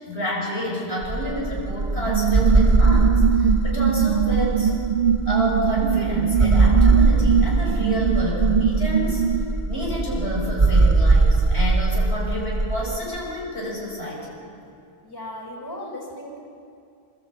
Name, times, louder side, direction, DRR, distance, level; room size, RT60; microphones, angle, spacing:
voice 1, 0.0-4.8 5.3-9.2 9.7-14.4, left 1 dB, 80° left, -3 dB, 6.0 m, -29 dB
sound 1, 1.0-13.0, right 3 dB, 30° right, 1.1 m, -21 dB
sound 2, 2.1-9.4, right 8 dB, 55° right, 1.0 m, -22 dB
voice 2, 15.0-16.4, left 1 dB, 20° left, -1 dB, 3.2 m, -36 dB
27.0 x 13.5 x 8.4 m, 2.5 s
omnidirectional pair, 1.1 m